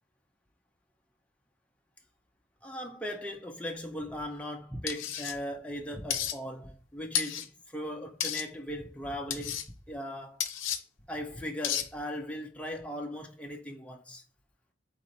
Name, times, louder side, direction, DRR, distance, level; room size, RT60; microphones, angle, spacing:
voice 1, 2.6-10.4 11.1-14.2, equal, 5° left, 0.7 m, -38 dB
sound 1, 4.9-5.3 6.1-6.4 7.1-7.5 8.2-8.5 9.3-9.7 10.4-10.8 11.6-11.9, left 9 dB, 90° left, 0.6 m, -32 dB
4.1 x 3.0 x 4.0 m
head